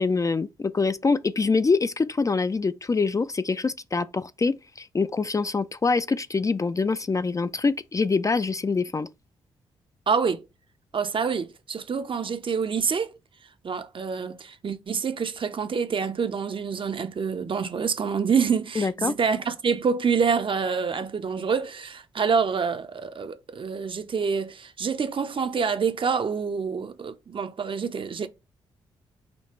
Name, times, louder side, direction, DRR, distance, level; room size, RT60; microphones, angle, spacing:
voice 1, 0.0-9.1 18.8-19.1, left 4 dB, 25° left, 0.4 m, -25 dB
voice 2, 10.1-10.4 10.9-13.1 13.6-28.3, right 6 dB, 45° right, 0.7 m, -27 dB
5.2 x 2.3 x 4.3 m
hypercardioid pair, 40°, 13 cm